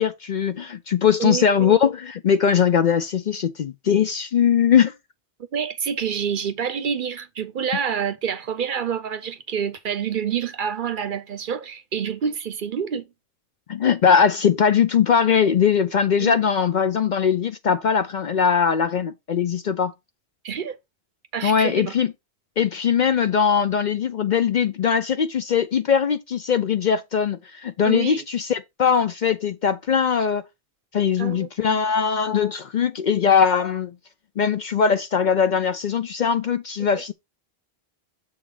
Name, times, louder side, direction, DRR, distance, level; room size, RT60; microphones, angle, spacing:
voice 1, 0.0-4.9 13.7-19.9 21.4-22.1 22.6-30.4 30.9-33.9 34.4-37.1, left 7 dB, 55° left, 0.6 m, -20 dB
voice 2, 1.2-1.8 5.5-13.1 16.2-16.4 20.4-20.8 21.3-21.9 27.8-28.2 31.2-31.8, right 7 dB, 55° right, 0.7 m, -27 dB
7.2 x 3.7 x 4.8 m
omnidirectional pair, 1.1 m